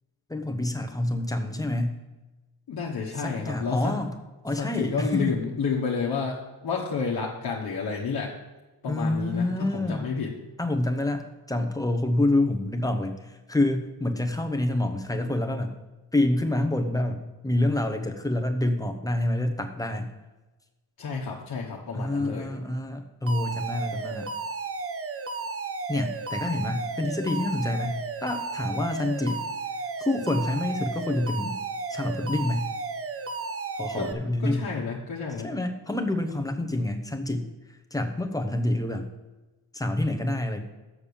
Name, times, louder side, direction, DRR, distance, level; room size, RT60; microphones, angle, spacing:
voice 1, 0.3-2.0 3.2-4.1 4.4-5.2 8.9-10.0 10.6-15.7 16.1-20.1 21.9-24.3 25.9-29.4 30.0-31.5 31.9-32.7 33.8-34.7 35.4-39.1 39.7-40.6, left 1 dB, 10° left, 5 dB, 0.8 m, -27 dB
voice 2, 2.7-4.0 4.6-8.3 8.8-10.3 21.0-22.5 33.9-34.1 34.4-35.5, left 5 dB, 60° left, -3 dB, 1.3 m, -30 dB
Alarm, 23.3-34.1, right 4 dB, 35° right, 0.6 m, -33 dB
7.2 x 6.7 x 6.9 m, 1.1 s
wide cardioid pair, 140°, 42 cm